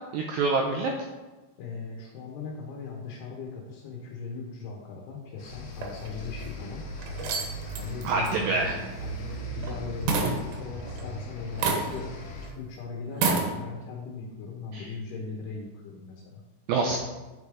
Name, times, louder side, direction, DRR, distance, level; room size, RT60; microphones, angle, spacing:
voice 1, 0.1-0.9 8.0-8.8 14.7-14.9 16.7-17.0, right 3 dB, 90° right, 2 dB, 2.0 m, -26 dB
voice 2, 1.6-6.8 7.8-12.1 12.5-16.4, left 4 dB, 75° left, -1 dB, 3.2 m, -38 dB
sound 1, 5.4-12.5, equal, 45° left, 2.5 m, -39 dB
sound 2, 5.8-6.5 7.0-9.8 10.1-11.1 11.6-12.2 12.4-12.5 13.1-13.5, right 4 dB, 70° right, 2.7 m, -29 dB
9.9 x 5.2 x 4.9 m, 1.2 s
omnidirectional pair, 5.0 m